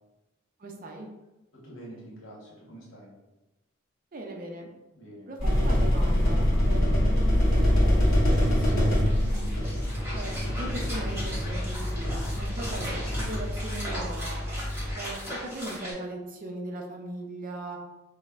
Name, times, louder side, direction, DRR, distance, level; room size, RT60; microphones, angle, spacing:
voice 1, 0.6-1.1 4.1-4.7 5.3-7.2 7.5-9.2 10.1-12.9 13.2-14.4 14.9-17.8, right 1 dB, 40° right, 1 dB, 0.5 m, -39 dB
voice 2, 1.5-3.1 4.9-5.3 9.3-9.6 14.7-14.9, right 1 dB, 65° left, -4 dB, 1.2 m, -46 dB
sound 1, 5.4-14.9, equal, 45° left, 1.2 m, -25 dB
sound 2, 8.0-15.9, equal, 10° right, 1.0 m, -38 dB
5.3 x 2.1 x 2.4 m, 1.0 s
head